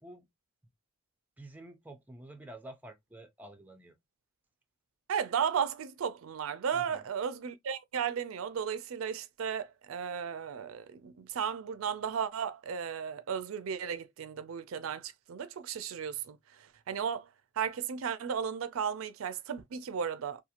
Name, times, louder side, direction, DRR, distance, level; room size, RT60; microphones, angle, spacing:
voice 1, 1.4-3.9 6.7-7.0, right 1 dB, 10° right, 0.4 m, -49 dB
voice 2, 5.1-16.4 16.9-17.3 17.6-20.4, right 7 dB, 75° right, 0.4 m, -34 dB
2.8 x 2.3 x 2.4 m
head